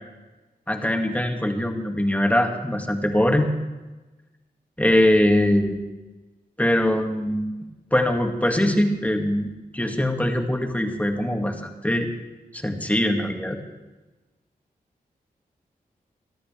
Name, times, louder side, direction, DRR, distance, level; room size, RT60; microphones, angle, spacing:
voice 1, 0.7-3.5 4.8-5.8 6.6-7.5 7.9-12.1 12.5-13.6, left 1 dB, 10° left, 3 dB, 2.1 m, -22 dB
20.5 x 13.0 x 3.4 m, 1.1 s
cardioid pair, 60°, 16 cm